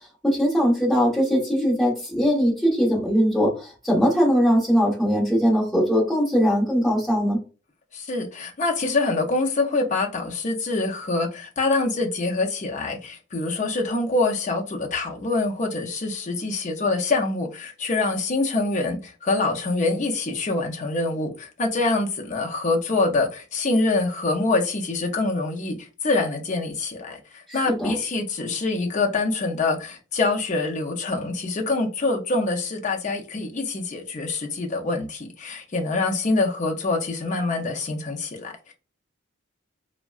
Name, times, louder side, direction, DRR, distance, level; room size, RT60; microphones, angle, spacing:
voice 1, 0.2-7.4 27.7-27.9, equal, ahead, 0.9 m, -20 dB
voice 2, 7.9-38.7, left 3 dB, 35° left, 0.5 m, -25 dB
3.5 x 2.1 x 2.3 m
head